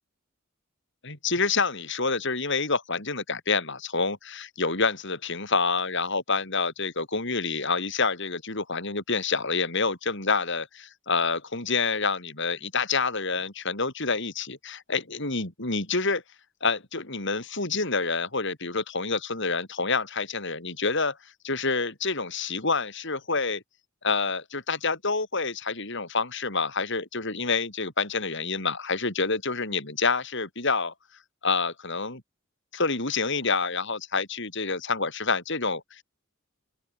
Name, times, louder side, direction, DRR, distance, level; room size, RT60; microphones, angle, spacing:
voice 1, 1.0-16.2 16.6-21.2 21.4-23.6 24.0-30.9 31.4-32.2 32.7-36.0, left 4 dB, 60° left, 6.4 m, -27 dB
open air
head